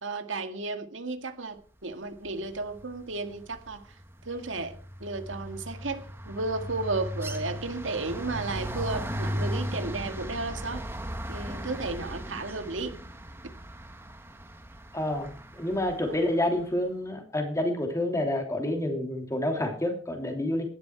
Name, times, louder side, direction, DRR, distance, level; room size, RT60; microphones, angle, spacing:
voice 1, 0.0-3.8 4.3-4.8 5.0-10.9 11.3-12.9, right 3 dB, 85° right, 7 dB, 2.0 m, -33 dB
sound 1, 2.6-2.9 3.2-16.3, equal, 10° right, 1.5 m, -37 dB
voice 2, 14.9-20.6, left 1 dB, 15° left, 3 dB, 3.0 m, -28 dB
16.5 x 11.5 x 4.7 m, 0.41 s
head